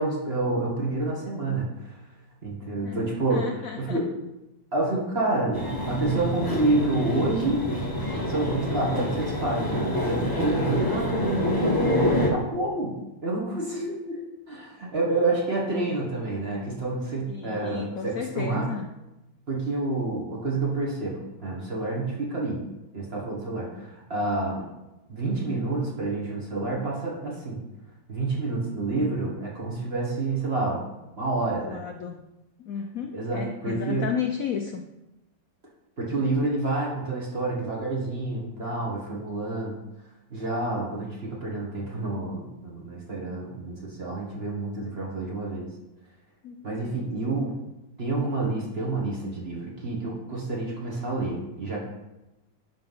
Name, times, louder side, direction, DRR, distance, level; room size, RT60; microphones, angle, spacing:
voice 1, 0.0-1.9 2.4-3.5 3.8-4.0 4.7-7.6 8.3-11.7 12.3-13.0 13.2-14.2 14.5-18.7 19.5-22.6 22.9-24.7 25.1-27.6 28.1-30.8 31.2-31.8 33.1-34.0 36.0-39.8 40.3-45.7 46.6-47.5 48.0-51.8, right 2 dB, 35° right, -3 dB, 1.9 m, -28 dB
voice 2, 3.3-4.0 17.3-18.9 24.6-24.7 31.6-32.3 32.6-34.8 46.4-47.1, left 8 dB, 70° left, 4 dB, 0.8 m, -33 dB
sound 1, 5.5-12.3, left 1 dB, 15° left, 1.0 m, -27 dB
11.0 x 3.8 x 5.6 m, 0.97 s
omnidirectional pair, 2.0 m